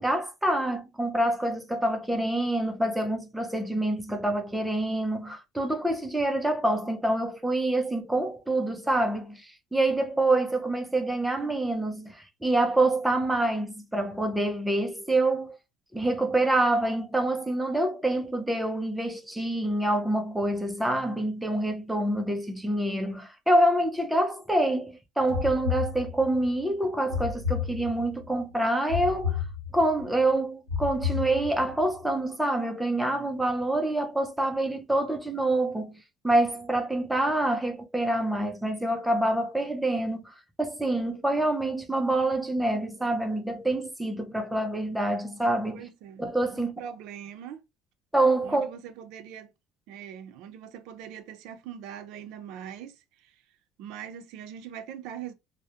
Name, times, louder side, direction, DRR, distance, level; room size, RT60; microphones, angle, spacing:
voice 1, 0.0-15.6 15.9-29.4 29.7-45.9 46.2-46.9 48.1-48.7, right 1 dB, 5° right, 0.4 m, -26 dB
sound 1, 25.3-26.5 27.1-28.3 28.9-30.0 30.7-31.8, left 7 dB, 45° left, 0.9 m, -31 dB
voice 2, 45.7-46.2 46.5-47.6 48.4-49.5 49.9-52.9 53.8-55.3, right 9 dB, 70° right, 0.4 m, -42 dB
2.3 x 2.0 x 2.7 m
cardioid pair, 170°, 0 cm